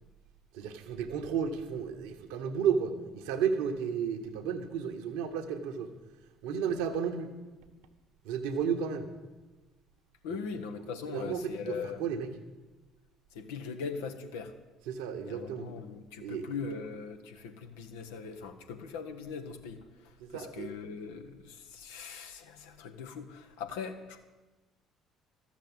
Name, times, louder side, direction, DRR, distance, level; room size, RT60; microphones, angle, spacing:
voice 1, 0.5-5.9 6.4-7.3 8.2-9.1 10.3-10.4 11.1-12.3 14.9-15.7 16.2-16.6 20.2-20.7, right 7 dB, 75° right, 5 dB, 1.2 m, -33 dB
voice 2, 10.2-12.0 13.3-14.5 15.2-24.2, left 5 dB, 75° left, 6 dB, 1.1 m, -40 dB
13.0 x 7.4 x 8.9 m, 1.2 s
hypercardioid pair, 55°, 0 cm